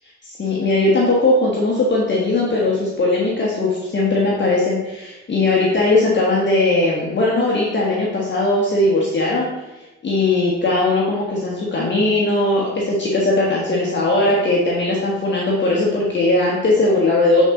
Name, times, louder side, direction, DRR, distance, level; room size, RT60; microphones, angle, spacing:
voice 1, 0.2-9.5 10.0-17.4, left 2 dB, 35° left, -4 dB, 1.4 m, -19 dB
8.0 x 4.1 x 3.8 m, 1.1 s
cardioid pair, 90°, 30 cm